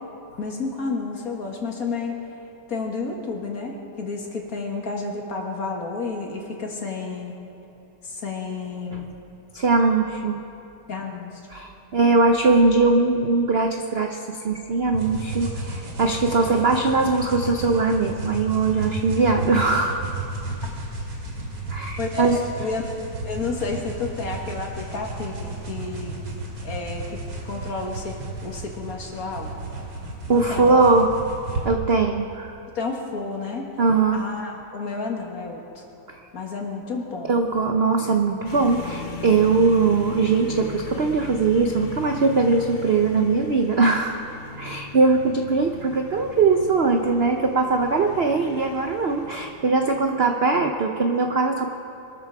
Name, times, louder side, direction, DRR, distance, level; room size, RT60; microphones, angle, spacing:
voice 1, 0.4-2.2 2.7-7.3 8.0-9.0 10.9-11.3 20.6-20.7 22.0-23.0 23.3-26.2 26.6-27.2 27.4-28.2 28.4-29.6 30.4-30.8 32.7-33.7 34.1-35.8 36.3-37.4, left 3 dB, 45° left, 1 dB, 2.1 m, -31 dB
voice 2, 9.5-10.4 11.5-20.0 21.7-22.4 30.3-31.2 31.6-32.5 33.8-34.2 36.1-36.2 37.3-44.2 44.6-51.7, right 4 dB, 70° right, 4 dB, 0.5 m, -21 dB
sound 1, 14.9-31.6, right 2 dB, 85° right, 3.3 m, -33 dB
sound 2, 38.4-50.2, left 4 dB, 70° left, 0.4 m, -38 dB
23.0 x 13.0 x 4.8 m, 2.9 s
omnidirectional pair, 2.2 m